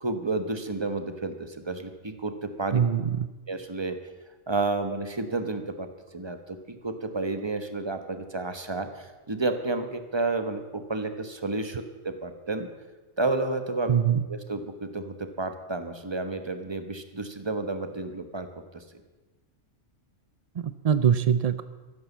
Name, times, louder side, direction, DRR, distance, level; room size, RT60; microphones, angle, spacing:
voice 1, 0.0-2.8 3.5-4.0 4.5-5.9 6.1-12.7 13.2-13.9 14.3-18.5 18.7-18.8, right 3 dB, 20° right, 8 dB, 1.1 m, -31 dB
voice 2, 2.7-3.3 13.9-14.2 20.6-21.6, right 8 dB, 80° right, 13 dB, 0.3 m, -23 dB
14.0 x 11.0 x 7.2 m, 1.2 s
omnidirectional pair, 1.4 m